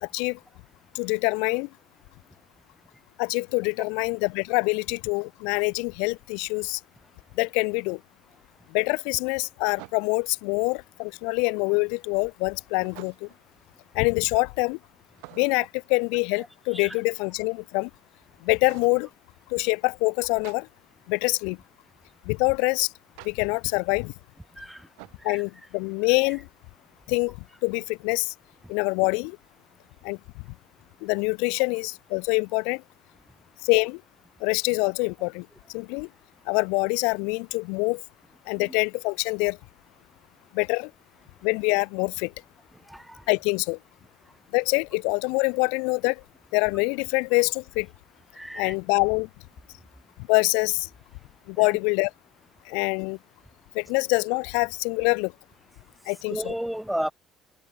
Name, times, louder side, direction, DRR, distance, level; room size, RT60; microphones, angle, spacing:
voice 1, 0.0-0.4 0.9-1.7 3.2-6.8 7.3-8.0 8.7-13.3 13.9-14.8 15.3-17.9 18.4-19.1 19.5-20.7 21.1-21.6 22.2-22.9 23.2-24.1 25.2-26.5 27.1-28.3 28.7-29.4 30.0-30.2 31.0-32.8 33.6-34.0 34.4-36.1 36.5-38.0 38.5-39.6 40.5-40.9 41.4-42.3 43.3-43.8 44.5-46.2 46.5-47.9 48.5-49.3 50.3-50.9 51.5-52.1 52.6-53.2 53.7-55.3 56.1-56.5, left 33 dB, 75° left, 0.8 m, -25 dB
sound 1, 7.1-7.2 9.8-10.3 12.8-13.5 15.1-15.8 18.7-19.1 20.4-20.6 23.2-23.3 25.0-25.3, right 40 dB or more, 75° right, 4.1 m, -47 dB
voice 2, 42.9-43.2 48.4-48.7 51.6-51.7 56.3-57.1, equal, 5° right, 3.8 m, -32 dB
hypercardioid pair, 55°, 0 cm